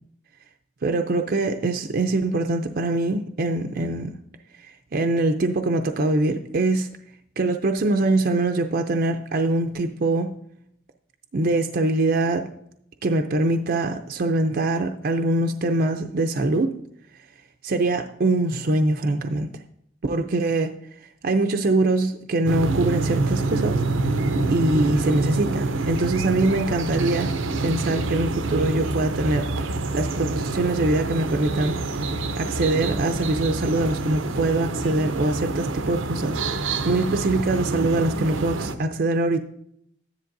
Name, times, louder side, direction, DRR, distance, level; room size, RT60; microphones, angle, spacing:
voice 1, 0.8-4.1 4.6-6.9 7.4-10.3 11.3-12.5 13.0-16.7 17.6-19.5 20.0-20.7 21.2-23.8 24.5-27.4 27.6-29.5 29.9-31.8 32.4-36.4 36.9-39.4, right 2 dB, 50° right, 5 dB, 0.5 m, -23 dB
sound 1, 22.5-38.8, right 2 dB, 90° right, 0.7 m, -26 dB
13.5 x 10.0 x 2.6 m, 0.73 s
head